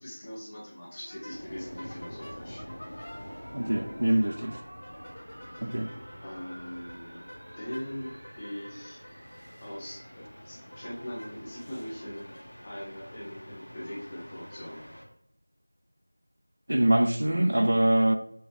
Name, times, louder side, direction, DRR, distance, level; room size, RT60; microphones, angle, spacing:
voice 1, 0.0-2.6 5.4-5.8 6.2-9.0 9.6-12.4 12.6-14.8, equal, 15° left, 0.6 m, -41 dB
sound 1, 0.9-15.1, equal, 50° left, 1.8 m, -52 dB
sound 2, 1.3-15.1, equal, 75° left, 1.1 m, -47 dB
sound 3, 1.5-10.4, right 1 dB, 30° right, 0.7 m, -52 dB
voice 2, 3.5-4.6 5.6-5.9 16.7-18.2, right 1 dB, 55° right, 0.4 m, -24 dB
6.2 x 2.3 x 3.1 m
figure-of-eight pair, 180°, 0 cm